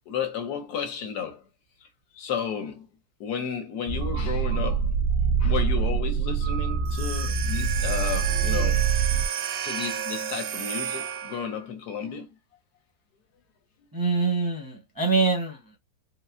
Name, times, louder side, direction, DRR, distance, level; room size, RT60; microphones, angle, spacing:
voice 1, 0.1-1.4 2.1-2.9 3.2-4.9 5.4-8.8 9.6-12.3, left 7 dB, 70° left, 1.2 m, -32 dB
sound 1, 3.9-9.3, right 6 dB, 85° right, 1.3 m, -25 dB
sound 2, 6.9-11.6, right 9 dB, 70° right, 0.9 m, -32 dB
voice 2, 13.9-15.8, right 4 dB, 30° right, 0.4 m, -25 dB
3.8 x 2.0 x 2.4 m
omnidirectional pair, 1.8 m